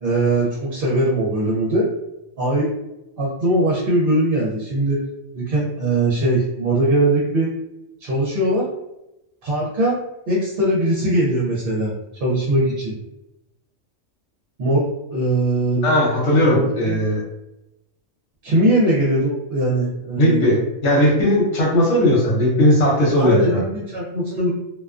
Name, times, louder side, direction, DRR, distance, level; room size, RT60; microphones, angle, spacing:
voice 1, 0.0-1.9 2.4-2.7 3.2-5.0 5.3-7.5 8.0-8.7 9.4-11.9 12.2-12.9 14.6-15.9 16.5-17.0 18.4-20.5 23.2-24.5, right 1 dB, 55° right, -5 dB, 0.7 m, -20 dB
voice 2, 15.8-17.2 20.2-23.6, left 1 dB, 75° left, -2 dB, 1.1 m, -17 dB
2.3 x 2.2 x 2.4 m, 0.89 s
omnidirectional pair, 1.3 m